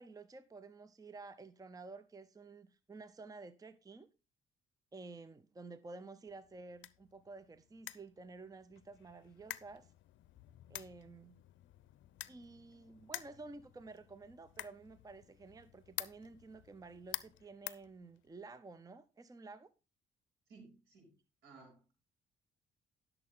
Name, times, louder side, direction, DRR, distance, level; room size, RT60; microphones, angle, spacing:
voice 1, 0.0-4.1 4.9-9.9 10.7-11.4 12.3-19.7, right 3 dB, 20° right, 0.6 m, -52 dB
sound 1, 6.3-18.5, left 14 dB, 75° left, 0.5 m, -50 dB
voice 2, 20.5-21.1 21.4-21.8, right 4 dB, 80° right, 5.4 m, -57 dB
10.5 x 6.9 x 3.7 m
cardioid pair, 90°, 20 cm